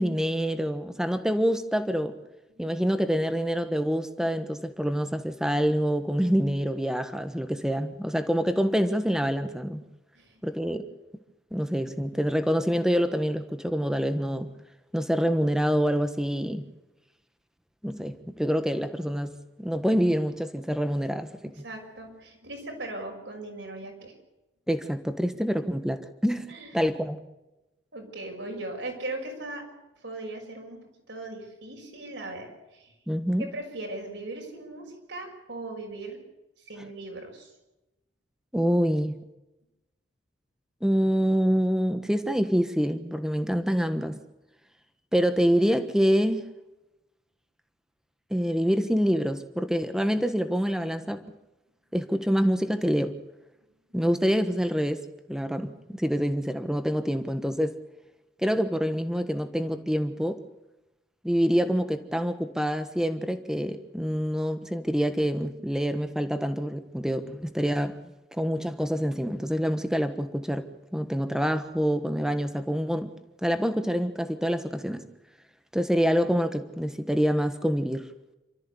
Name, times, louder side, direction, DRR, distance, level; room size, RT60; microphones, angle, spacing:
voice 1, 0.0-2.2 2.6-9.8 10.4-10.8 11.5-14.5 14.9-16.7 17.8-21.6 24.7-26.5 26.7-27.2 33.1-33.5 38.5-39.2 40.8-44.2 45.1-46.5 48.3-51.2 51.9-53.2 53.9-57.8 58.4-60.4 61.2-68.0 68.3-75.0 75.7-78.1, equal, 5° right, 9 dB, 1.4 m, -26 dB
voice 2, 21.5-24.1 26.5-26.8 27.9-29.6 30.0-32.9 33.4-36.2 36.7-37.5, right 2 dB, 70° right, 2 dB, 6.2 m, -39 dB
28.0 x 14.0 x 8.3 m, 1.0 s
head